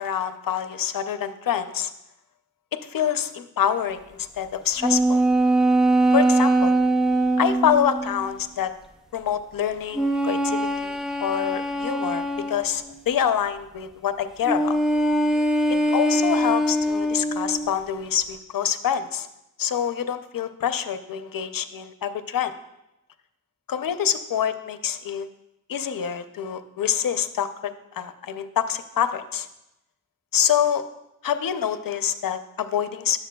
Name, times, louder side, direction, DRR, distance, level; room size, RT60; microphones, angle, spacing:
voice 1, 0.0-1.9 2.9-5.2 6.1-6.7 7.4-8.7 9.1-14.8 15.9-19.3 19.6-22.5 23.7-25.3 25.7-29.5 30.3-30.8 31.2-33.2, left 9 dB, 80° left, 10 dB, 0.5 m, -26 dB
sound 1, 4.8-8.3 9.9-12.9 14.4-17.8, right 1 dB, ahead, 0.5 m, -22 dB
11.0 x 7.1 x 2.2 m, 0.89 s
wide cardioid pair, 100°, 33 cm